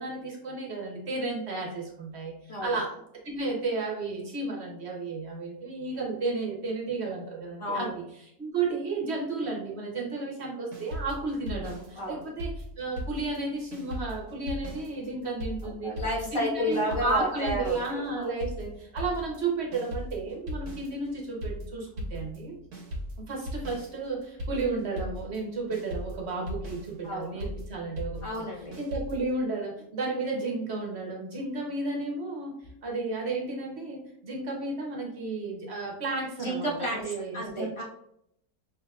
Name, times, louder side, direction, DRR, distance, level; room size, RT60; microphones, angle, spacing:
voice 1, 0.0-2.9 3.2-16.0 16.3-22.5 23.2-28.4 28.8-32.5 32.8-37.7, right 3 dB, 50° right, -1 dB, 1.1 m, -33 dB
voice 2, 2.5-2.8 7.6-7.9 11.9-12.3 15.6-18.3 27.0-27.4 28.2-28.8 36.4-37.8, equal, 20° left, -5 dB, 1.2 m, -32 dB
sound 1, 10.7-13.4 13.7-29.3, equal, 80° right, 1.5 m, -38 dB
6.0 x 2.7 x 2.4 m, 0.75 s
omnidirectional pair, 1.6 m